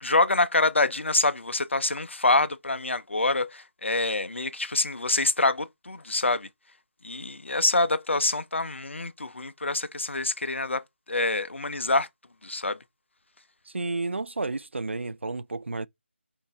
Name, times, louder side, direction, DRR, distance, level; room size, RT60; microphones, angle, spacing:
voice 1, 0.0-6.5 7.0-12.1 12.4-12.8, left 2 dB, 70° left, 0.6 m, -26 dB
voice 2, 13.7-15.9, right 3 dB, 70° right, 0.4 m, -31 dB
5.5 x 2.6 x 3.5 m
figure-of-eight pair, 160°, 7 cm